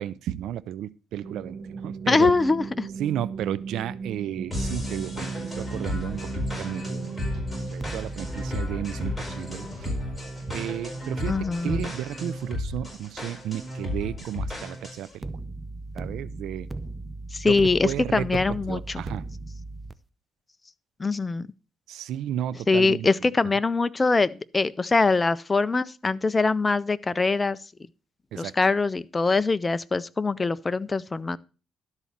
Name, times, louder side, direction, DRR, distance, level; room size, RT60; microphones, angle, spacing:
voice 1, 0.0-2.3 3.0-6.2 6.6-7.2 7.7-10.0 10.5-11.4 11.6-15.2 15.9-16.7 17.4-17.5 17.8-18.2 18.7-19.3 21.9-23.1 28.3-28.5, right 11 dB, 80° right, 0.5 m, -33 dB
sound 1, 1.2-7.7, right 5 dB, 40° right, 1.7 m, -37 dB
voice 2, 2.1-2.9 11.2-11.9 17.3-19.0 21.0-21.5 22.7-27.6 28.4-31.4, left 3 dB, 25° left, 0.5 m, -23 dB
sound 2, 4.5-15.1, left 1 dB, 10° left, 4.9 m, -33 dB
sound 3, 7.7-12.8 15.2-19.9, right 2 dB, 15° right, 0.7 m, -39 dB
12.5 x 4.1 x 7.3 m
cardioid pair, 90°, 0 cm